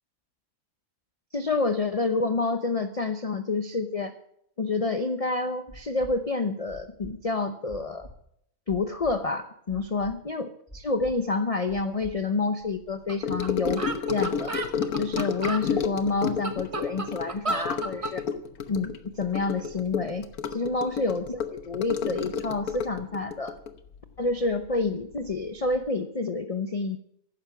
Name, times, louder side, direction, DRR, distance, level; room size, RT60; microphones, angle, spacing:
voice 1, 1.3-4.1 4.6-8.1 8.7-14.5 15.0-18.2 18.7-20.3 20.5-23.6 24.2-27.0, left 3 dB, 35° left, 8 dB, 0.6 m, -28 dB
sound 1, 5.7-6.1 6.7-7.1 7.7-8.1 8.7-9.1 9.7-10.1 10.7-11.1 11.7-12.1 12.7-12.8, equal, 15° left, 5.0 m, -45 dB
sound 2, 13.1-13.2 13.4-13.5 13.8-15.7 16.2-18.2, right 3 dB, 25° right, 1.2 m, -32 dB
Gurgling / Sink (filling or washing) / Trickle dribble, 13.2-24.9 25.1-25.5 25.7-25.8, left 7 dB, 80° left, 1.5 m, -31 dB
15.0 x 12.0 x 5.9 m, 0.71 s
omnidirectional pair, 1.6 m